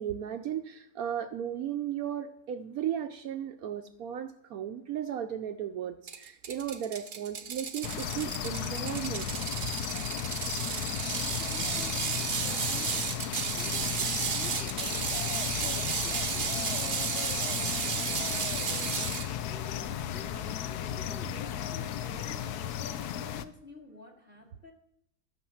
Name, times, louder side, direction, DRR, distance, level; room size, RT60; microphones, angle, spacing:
voice 1, 0.0-9.7, right 9 dB, 70° right, 7 dB, 1.0 m, -35 dB
Ratchet pawl, 6.1-19.3, right 6 dB, 45° right, 0.7 m, -33 dB
sound 1, 7.8-23.4, left 10 dB, 70° left, 1.1 m, -35 dB
voice 2, 10.7-19.2 19.5-24.7, left 3 dB, 35° left, -1 dB, 2.4 m, -50 dB
13.5 x 6.1 x 7.1 m, 0.74 s
omnidirectional pair, 1.8 m